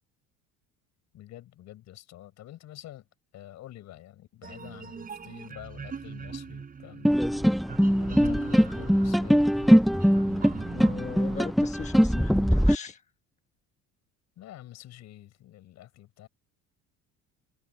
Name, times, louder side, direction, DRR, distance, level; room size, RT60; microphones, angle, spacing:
voice 1, 1.1-3.1 3.3-9.8 14.4-16.3, left 13 dB, 55° left, 5.8 m, -48 dB
sound 1, 4.4-11.5, right 6 dB, 25° right, 5.9 m, -42 dB
sound 2, 7.0-12.7, equal, ahead, 0.3 m, -22 dB
voice 2, 10.7-13.0, left 5 dB, 20° left, 1.3 m, -37 dB
cardioid pair, 130°, 32 cm